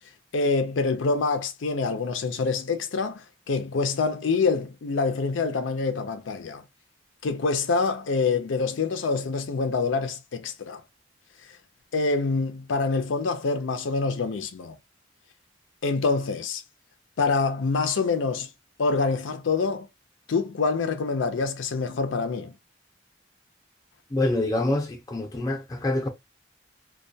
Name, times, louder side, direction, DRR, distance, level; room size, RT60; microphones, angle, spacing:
voice 1, 0.3-6.6 7.2-10.8 11.9-14.7 15.8-16.6 17.2-18.5 18.8-19.9 20.3-22.5, left 4 dB, 90° left, 0.5 m, -26 dB
voice 2, 24.1-26.1, left 1 dB, 20° left, 0.6 m, -26 dB
2.2 x 2.2 x 2.6 m
head